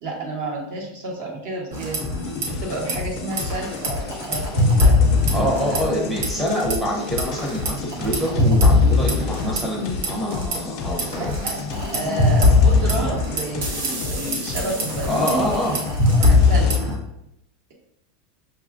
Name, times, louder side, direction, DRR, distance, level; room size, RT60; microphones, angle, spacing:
voice 1, 0.0-2.0 2.5-5.0 5.7-6.1 11.2-11.6 11.9-15.4 16.2-16.9, right 2 dB, 55° right, -1 dB, 1.0 m, -30 dB
sound 1, 1.7-2.5 2.7-2.9 3.3-6.0 6.2-6.7 7.2-10.6 11.0-16.9, left 3 dB, 85° right, 1.0 m, -20 dB
sound 2, 2.0-16.8, left 4 dB, 40° left, 0.4 m, -31 dB
voice 2, 5.3-11.4 15.1-15.8, equal, 5° right, -5 dB, 0.6 m, -25 dB
5.6 x 2.3 x 2.4 m, 0.82 s
supercardioid pair, 170°, 0 cm